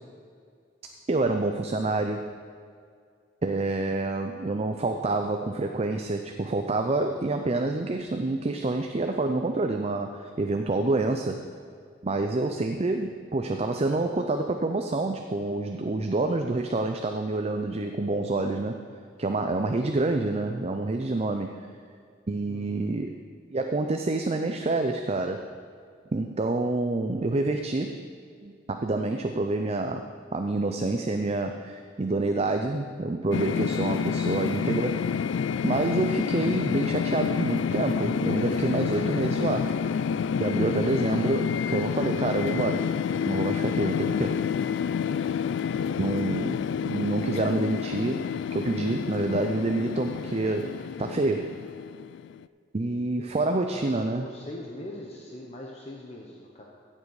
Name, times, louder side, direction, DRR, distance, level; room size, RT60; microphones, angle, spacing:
voice 1, 1.1-2.3 3.4-11.5 12.0-18.8 19.2-21.6 22.3-23.2 23.5-25.5 26.1-28.0 28.4-35.0 35.6-39.8 40.4-42.9 43.3-44.4 46.0-51.5 52.7-54.3, right 2 dB, 35° right, 5 dB, 0.5 m, -27 dB
voice 2, 22.5-22.9 53.7-56.6, left 1 dB, 35° left, -1 dB, 1.1 m, -42 dB
sound 1, 33.3-52.4, left 7 dB, 75° left, 0.3 m, -28 dB
16.0 x 7.5 x 4.8 m, 2.2 s
head